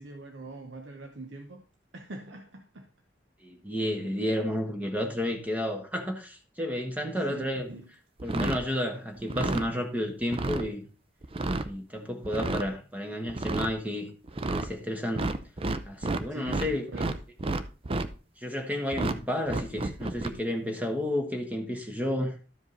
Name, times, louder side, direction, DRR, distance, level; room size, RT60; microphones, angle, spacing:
voice 1, 0.0-1.6 1.9-2.9 7.3-7.9 16.3-17.1, right 2 dB, 80° right, 0.9 m, -43 dB
voice 2, 3.4-7.8 8.2-10.8 11.5-14.1 14.5-15.3 15.8-17.1 18.4-22.3, left 1 dB, 10° right, 1.4 m, -31 dB
sound 1, 8.2-8.7 9.2-9.7 10.2-10.7 11.2-11.7 12.2-12.7 13.3-13.7 14.3-14.7 15.1-16.7 16.9-18.1 18.9-19.2 19.5-20.3, right 2 dB, 30° right, 0.6 m, -30 dB
12.5 x 5.0 x 3.9 m
head